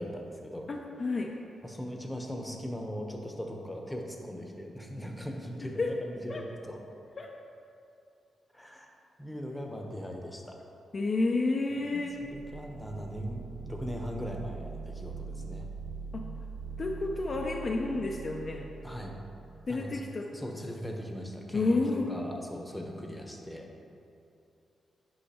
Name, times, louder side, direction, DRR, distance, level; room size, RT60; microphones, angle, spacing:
voice 1, 0.0-0.7 1.6-6.8 8.5-10.6 11.7-12.0 12.3-15.7 18.8-19.2 19.7-20.0 20.3-23.7, equal, 5° left, 2 dB, 0.8 m, -39 dB
voice 2, 0.7-1.3 5.8-5.9 6.3-6.4 7.2-7.3 10.9-12.2 16.8-18.7 19.7-20.3 21.5-22.1, left 3 dB, 40° left, 0 dB, 0.4 m, -30 dB
sound 1, 12.1-19.9, right 4 dB, 60° right, 0.3 m, -42 dB
8.4 x 5.4 x 2.9 m, 2.7 s
cardioid pair, 95°, 0 cm